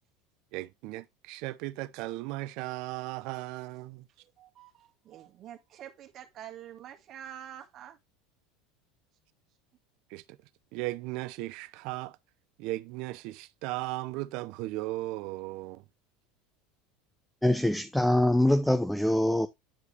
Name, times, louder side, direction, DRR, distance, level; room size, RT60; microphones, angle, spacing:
voice 1, 0.5-4.1 10.1-10.4 10.7-12.2 12.6-15.8, right 19 dB, 65° right, 0.6 m, -36 dB
voice 2, 4.2-8.0, right 10 dB, 45° right, 1.7 m, -47 dB
voice 3, 17.4-19.5, left 1 dB, 5° left, 0.6 m, -24 dB
10.0 x 4.8 x 3.2 m
hypercardioid pair, 85°, 0 cm